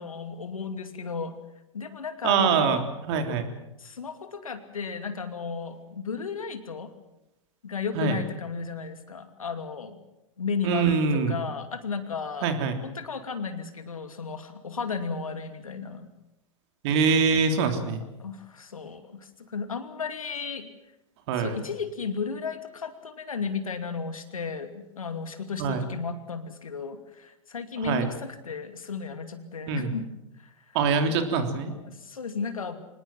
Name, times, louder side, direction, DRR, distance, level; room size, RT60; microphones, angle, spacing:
voice 1, 0.0-1.3 1.7-2.9 3.8-6.9 7.6-10.0 10.4-12.5 12.8-16.1 17.6-17.9 18.2-20.7 21.4-30.0 30.4-30.5 31.7-32.8, left 5 dB, 85° left, 8 dB, 2.6 m, -34 dB
voice 2, 2.2-3.5 8.0-8.2 10.6-11.4 12.4-12.8 16.8-18.0 21.3-21.6 25.6-25.8 27.8-28.1 29.7-30.0 30.7-31.7, right 5 dB, 55° right, 6 dB, 3.5 m, -24 dB
25.0 x 20.0 x 7.6 m, 0.89 s
hypercardioid pair, 105°, 17 cm